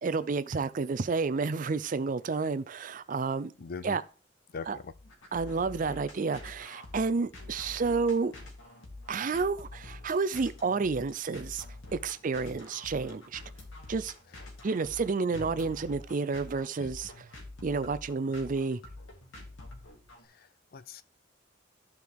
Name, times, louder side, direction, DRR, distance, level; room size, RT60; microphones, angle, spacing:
voice 1, 0.0-3.5 3.8-4.0 4.7-4.8 5.3-8.3 9.1-11.7 11.9-13.4 13.9-14.1 14.6-17.3 17.6-18.8, right 4 dB, 45° right, 0.4 m, -30 dB
voice 2, 3.6-4.0 4.5-4.9 15.4-15.6 16.8-16.9 20.2-21.0, left 5 dB, 50° left, 0.5 m, -42 dB
sound 1, 4.9-20.2, left 2 dB, 85° left, 2.3 m, -47 dB
14.0 x 4.7 x 3.5 m
head